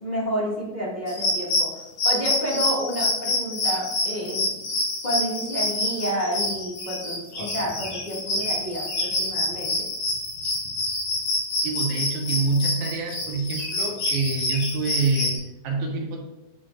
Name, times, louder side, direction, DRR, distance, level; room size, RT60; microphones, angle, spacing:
voice 1, 0.0-4.7 5.0-9.9, equal, 15° left, -5 dB, 1.8 m, -30 dB
sound 1, 1.1-15.4, left 2 dB, 65° left, 3.7 m, -27 dB
voice 2, 11.6-16.2, right 3 dB, 85° right, 0 dB, 3.0 m, -26 dB
10.5 x 7.6 x 2.5 m, 1.0 s
omnidirectional pair, 3.4 m